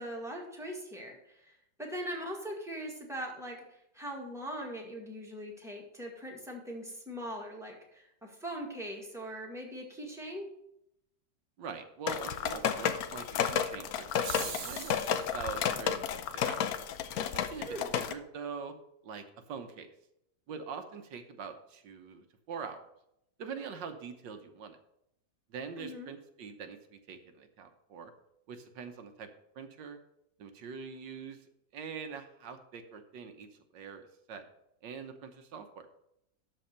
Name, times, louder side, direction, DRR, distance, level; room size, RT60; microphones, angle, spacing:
voice 1, 0.0-1.5 1.8-3.6 3.9-10.5 17.7-17.9 25.8-26.1, equal, ahead, -1 dB, 1.8 m, -41 dB
voice 2, 11.6-16.7 17.3-18.7 19.0-19.9 20.5-22.9 23.4-24.8 25.5-28.1 28.5-29.3 29.5-30.0 30.4-31.4 31.7-33.5 33.7-34.4 34.8-35.9, right 6 dB, 75° right, 7 dB, 1.6 m, -44 dB
sound 1, 12.1-18.1, left 8 dB, 65° left, 1.0 m, -32 dB
sound 2, 14.1-15.4, right 6 dB, 60° right, 1.5 m, -41 dB
12.5 x 4.2 x 6.7 m, 0.81 s
omnidirectional pair, 2.0 m